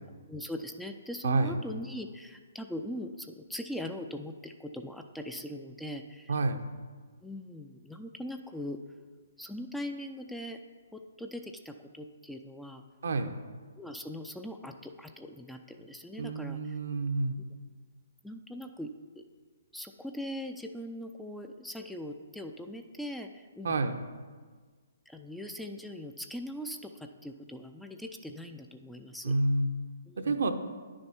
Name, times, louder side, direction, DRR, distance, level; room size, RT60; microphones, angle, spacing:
voice 1, 0.3-6.3 7.2-8.8 9.4-10.6 10.9-12.8 13.8-16.8 18.2-18.9 19.2-19.3 19.7-23.7 25.1-29.3 30.1-30.4, left 1 dB, ahead, 5 dB, 0.4 m, -41 dB
voice 2, 1.2-1.6 6.3-6.6 13.0-13.3 16.2-17.4 23.6-24.0 29.2-29.7 30.2-30.5, right 3 dB, 70° right, 7 dB, 0.8 m, -28 dB
10.0 x 6.4 x 4.4 m, 1.5 s
figure-of-eight pair, 135°, 0 cm